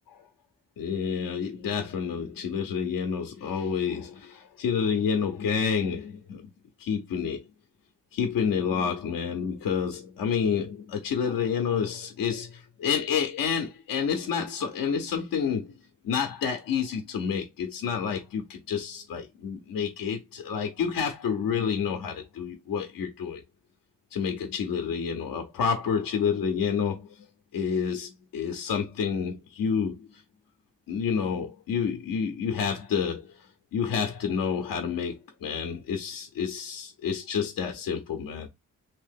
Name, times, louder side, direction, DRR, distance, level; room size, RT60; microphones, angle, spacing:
voice 1, 0.8-6.4 6.8-7.4 8.1-15.7 16.0-23.4 24.1-27.1 27.5-30.2 30.9-33.5 33.7-38.5, left 7 dB, 85° left, 0.6 m, -29 dB
2.9 x 2.7 x 3.5 m
cardioid pair, 60°, 33 cm